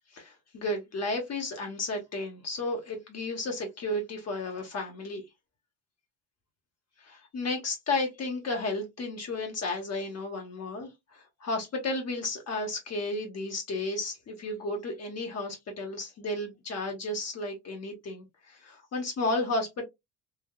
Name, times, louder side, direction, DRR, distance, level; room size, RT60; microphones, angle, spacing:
voice 1, 0.1-5.2 7.0-19.8, left 2 dB, 40° left, 1.1 m, -33 dB
3.4 x 2.3 x 2.2 m
cardioid pair, 110°, 40 cm